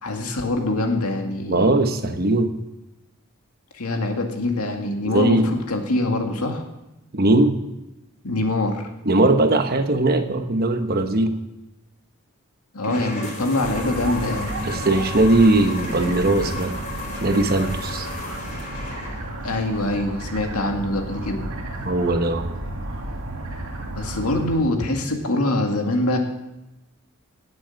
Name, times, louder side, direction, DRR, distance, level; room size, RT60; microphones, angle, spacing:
voice 1, 0.0-1.7 3.7-6.6 8.2-8.8 12.7-14.5 19.4-21.5 24.0-26.2, left 2 dB, 90° left, 3 dB, 2.0 m, -24 dB
voice 2, 1.5-2.5 5.1-5.5 7.1-7.6 9.0-11.3 14.6-16.7 17.2-18.1 21.8-22.5, right 2 dB, 45° right, 7 dB, 1.0 m, -19 dB
sound 1, 12.8-19.4, left 2 dB, 35° left, 4.0 m, -34 dB
sound 2, 13.6-24.6, right 1 dB, 70° right, 2.1 m, -33 dB
16.5 x 7.8 x 5.8 m, 0.96 s
head